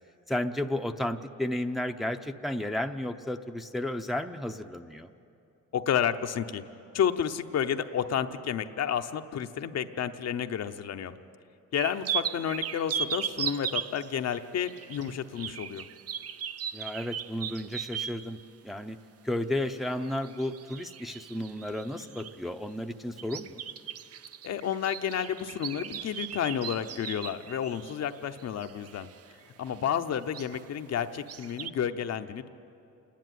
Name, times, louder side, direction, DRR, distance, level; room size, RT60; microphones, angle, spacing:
voice 1, 0.3-5.1 16.7-18.4 18.6-19.0 19.2-23.6, left 1 dB, ahead, 5 dB, 0.7 m, -33 dB
voice 2, 5.7-6.6 6.9-11.1 11.7-15.9 24.4-29.1 29.6-32.5, left 8 dB, 60° left, 7 dB, 0.8 m, -31 dB
sound 1, 11.8-18.3 19.9-22.5 23.2-29.3 29.7-29.9 30.2-30.6 31.1-31.7, right 8 dB, 50° right, 0.6 m, -37 dB
28.0 x 10.5 x 9.3 m, 2.7 s
cardioid pair, 90°, 30 cm